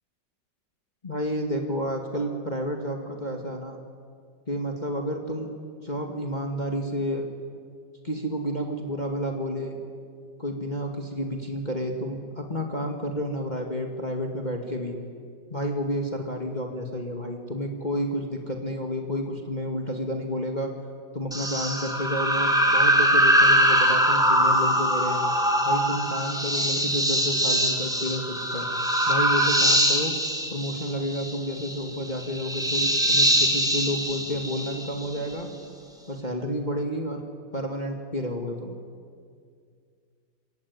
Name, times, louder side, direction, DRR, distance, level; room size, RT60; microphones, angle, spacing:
voice 1, 1.0-3.8 4.5-5.5 5.8-7.3 8.0-9.8 10.4-15.0 15.5-20.7 21.1-25.2 25.6-30.1 30.5-35.5 36.1-37.2 37.5-38.7, equal, 25° left, 3 dB, 2.1 m, -30 dB
sound 1, 21.3-35.2, equal, ahead, 3.2 m, -23 dB
26.5 x 23.0 x 9.7 m, 2.2 s
omnidirectional pair, 2.1 m